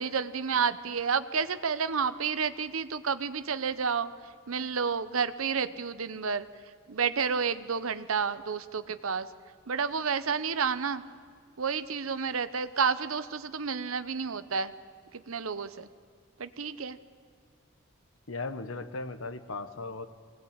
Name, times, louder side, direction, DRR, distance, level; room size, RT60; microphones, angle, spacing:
voice 1, 0.0-4.1 4.5-6.5 6.9-9.3 9.7-11.0 11.6-14.7 15.1-15.9 16.4-17.0, right 6 dB, 80° right, 13 dB, 0.8 m, -30 dB
voice 2, 18.3-20.1, left 3 dB, 70° left, 10 dB, 1.2 m, -37 dB
22.0 x 18.5 x 8.8 m, 2.1 s
head